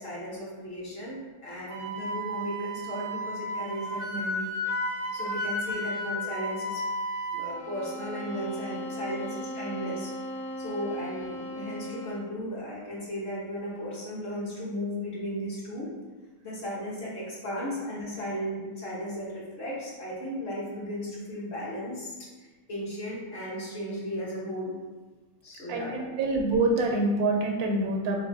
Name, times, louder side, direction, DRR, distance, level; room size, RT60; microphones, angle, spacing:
voice 1, 0.0-4.5 5.1-6.8 7.3-10.1 10.6-15.9 16.4-22.1 22.7-24.8 25.4-26.0, equal, 45° left, -6 dB, 1.1 m, -35 dB
Wind instrument woodwind instrument, 1.7-7.5, equal, 65° right, 0.8 m, -33 dB
sound 1, 7.5-12.4, equal, 90° left, 1.1 m, -38 dB
voice 2, 25.7-28.2, right 2 dB, 85° right, 1 dB, 1.1 m, -26 dB
3.6 x 3.3 x 2.6 m, 1.3 s
omnidirectional pair, 1.5 m